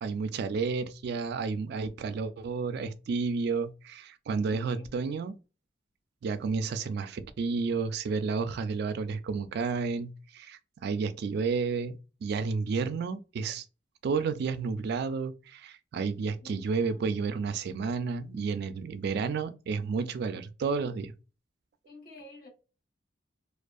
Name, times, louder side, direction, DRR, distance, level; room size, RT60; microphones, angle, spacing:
voice 1, 0.0-5.3 6.2-13.6 14.0-21.1, right 5 dB, 55° right, 0.3 m, -31 dB
voice 2, 4.5-4.9 16.4-17.0 21.9-22.5, left 3 dB, 50° left, 1.1 m, -50 dB
2.6 x 2.3 x 2.3 m
head